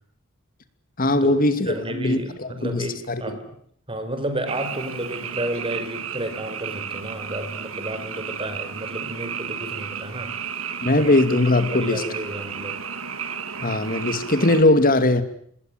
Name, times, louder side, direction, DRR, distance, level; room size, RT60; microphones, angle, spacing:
voice 1, 1.0-3.4 10.8-12.0 13.6-15.2, left 2 dB, 45° left, 2.7 m, -20 dB
voice 2, 1.7-3.4 3.9-10.5 11.0-11.2 11.7-12.8, right 1 dB, 25° right, 4.9 m, -31 dB
Frog, 4.5-14.6, right 7 dB, 85° right, 2.4 m, -33 dB
27.0 x 21.0 x 9.3 m
head